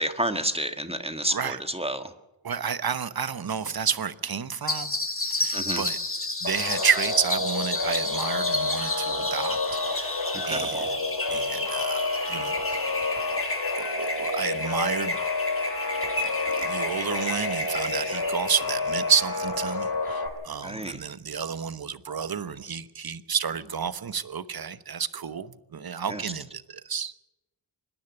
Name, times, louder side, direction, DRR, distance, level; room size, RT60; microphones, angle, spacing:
voice 1, 0.0-2.1 5.5-5.8 10.3-10.6 20.6-21.0 26.1-26.2, right 1 dB, 10° right, 1.7 m, -30 dB
voice 2, 1.3-1.6 2.4-5.0 5.3-6.0 6.4-9.6 9.9-10.1 10.5-11.0 11.3-12.9 13.8-15.2 16.5-27.1, right 6 dB, 45° right, 1.1 m, -30 dB
sound 1, 4.7-19.9, left 2 dB, 25° left, 2.7 m, -32 dB
sound 2, 6.4-20.3, left 3 dB, 50° left, 4.2 m, -30 dB
25.5 x 10.5 x 9.9 m
cardioid pair, 55°, 50 cm